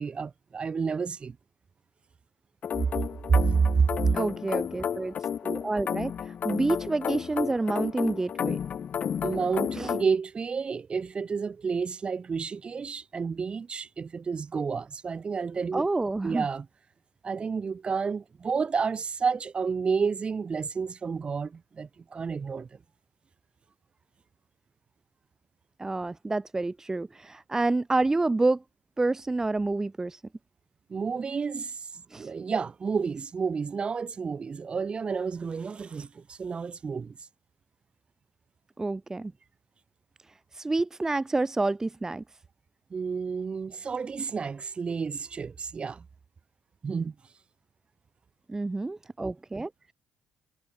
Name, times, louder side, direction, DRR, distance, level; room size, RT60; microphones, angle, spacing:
voice 1, 0.0-1.4 3.3-4.2 9.2-15.9 16.2-16.7 17.2-22.7 30.9-37.2 42.9-46.0 46.8-47.1, right 5 dB, 35° right, 1.3 m, -30 dB
sound 1, 2.6-10.0, left 8 dB, 50° left, 1.7 m, -32 dB
voice 2, 4.1-8.6 9.7-9.9 15.7-16.5 25.8-28.6 29.0-30.2 32.1-32.3 38.8-39.3 40.5-42.2 48.5-49.9, right 2 dB, 15° right, 0.8 m, -28 dB
cardioid pair, 95°, 3 cm